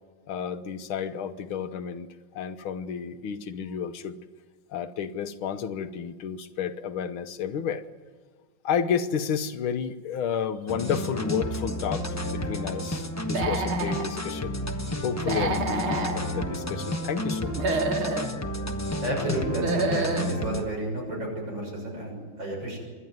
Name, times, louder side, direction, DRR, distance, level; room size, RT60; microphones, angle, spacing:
voice 1, 0.3-2.1 2.3-4.2 4.7-7.8 8.6-14.6 15.0-17.8, left 7 dB, 85° left, 10 dB, 1.8 m, -31 dB
sound 1, 10.7-20.7, left 1 dB, 15° left, 0.5 m, -31 dB
Human voice / Animal, 13.2-14.1 15.2-16.2 17.4-18.3 19.4-20.3, right 3 dB, 85° right, 2.6 m, -28 dB
voice 2, 19.0-22.8, right 1 dB, 60° right, 0 dB, 7.2 m, -31 dB
26.0 x 11.5 x 9.3 m, 1.5 s
omnidirectional pair, 2.3 m